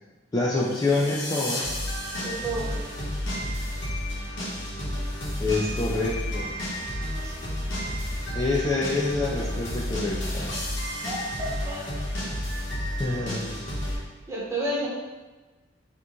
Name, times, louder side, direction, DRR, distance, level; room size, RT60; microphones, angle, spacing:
voice 1, 0.3-1.7 5.4-6.5 8.3-10.5 13.0-13.6, left 2 dB, 20° left, -5 dB, 0.4 m, -26 dB
sound 1, 0.6-14.0, equal, 80° left, 1.2 m, -31 dB
voice 2, 2.2-2.8 7.2-7.3 11.0-11.8 13.9-14.0 14.3-14.9, right 1 dB, 15° right, -6 dB, 0.9 m, -31 dB
3.8 x 2.9 x 3.6 m, 1.2 s
head